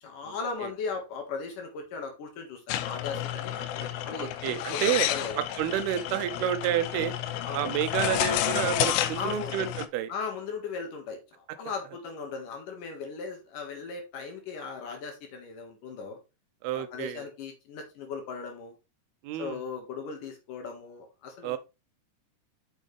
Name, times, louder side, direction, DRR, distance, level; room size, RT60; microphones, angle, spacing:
voice 1, 0.0-5.4 7.4-7.7 9.1-9.5 10.1-16.2 16.7-18.8 19.4-21.6, left 5 dB, 60° left, 2.9 m, -38 dB
sound 1, 2.7-9.9, left 12 dB, 80° left, 2.3 m, -31 dB
voice 2, 4.2-5.1 5.4-7.1 7.5-10.1 16.6-17.3 19.2-19.7 21.4-21.6, right 11 dB, 80° right, 2.6 m, -30 dB
7.1 x 6.3 x 3.2 m
omnidirectional pair, 4.6 m